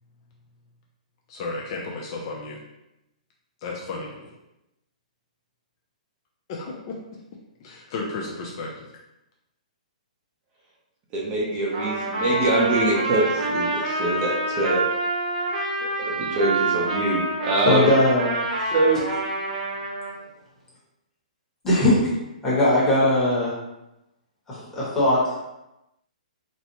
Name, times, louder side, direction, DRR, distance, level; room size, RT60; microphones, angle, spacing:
voice 1, 1.3-2.6 3.6-4.3 6.5-7.0 7.6-8.9, left 3 dB, 35° left, -2 dB, 0.5 m, -33 dB
voice 2, 11.1-14.8 15.8-17.9 18.7-19.0, right 2 dB, 25° right, -3 dB, 0.6 m, -24 dB
Trumpet, 11.7-20.1, right 2 dB, 80° right, 1.0 m, -27 dB
voice 3, 17.7-18.3 21.6-22.1 22.4-23.5 24.5-25.3, left 1 dB, 10° left, -8 dB, 1.1 m, -20 dB
4.0 x 2.1 x 2.9 m, 0.92 s
hypercardioid pair, 155°, 4 cm